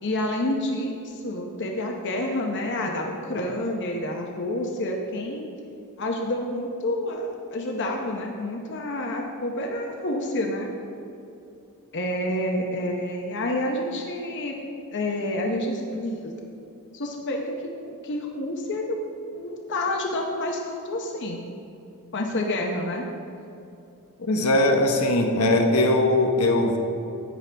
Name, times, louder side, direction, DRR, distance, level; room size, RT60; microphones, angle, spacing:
voice 1, 0.0-5.4 6.0-10.7 11.9-14.5 14.9-16.3 16.9-19.0 19.3-21.4 22.1-23.0, left 1 dB, 55° left, 1 dB, 0.8 m, -28 dB
voice 2, 24.3-26.8, left 1 dB, 80° left, 3 dB, 1.0 m, -20 dB
11.0 x 8.9 x 3.4 m, 2.7 s
head